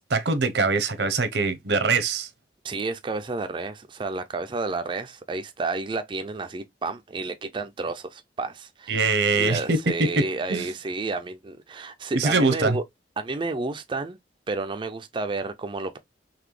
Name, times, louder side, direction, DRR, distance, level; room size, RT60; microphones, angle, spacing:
voice 1, 0.1-2.3 8.9-9.8 10.2-10.6 12.1-12.8, right 3 dB, 80° right, 0.8 m, -23 dB
voice 2, 2.6-12.8 13.2-14.2 14.5-16.0, right 3 dB, 30° right, 0.4 m, -31 dB
4.0 x 3.1 x 3.1 m
head